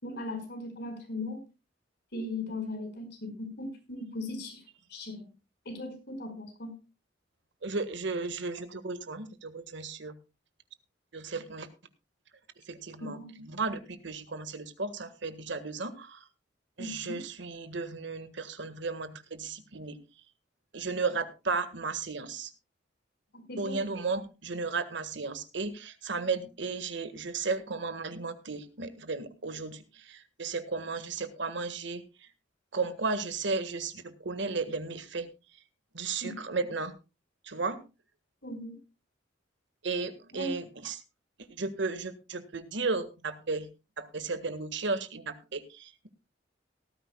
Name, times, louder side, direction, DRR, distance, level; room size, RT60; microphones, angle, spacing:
voice 1, 0.0-1.4 2.1-4.6 4.9-5.3 5.6-6.8 13.0-13.4 16.8-17.2 23.3-23.8 36.2-36.3 38.4-38.8 40.3-40.6, left 2 dB, 60° left, 5 dB, 5.0 m, -38 dB
voice 2, 7.6-10.2 11.1-11.7 12.6-16.3 16.8-20.0 20.7-22.5 23.6-32.3 32.7-35.3 35.9-36.9 37.4-37.8 39.8-41.0 41.4-43.7 44.0-46.1, right 4 dB, 70° right, 11 dB, 1.6 m, -34 dB
18.0 x 14.0 x 2.3 m, 0.28 s
head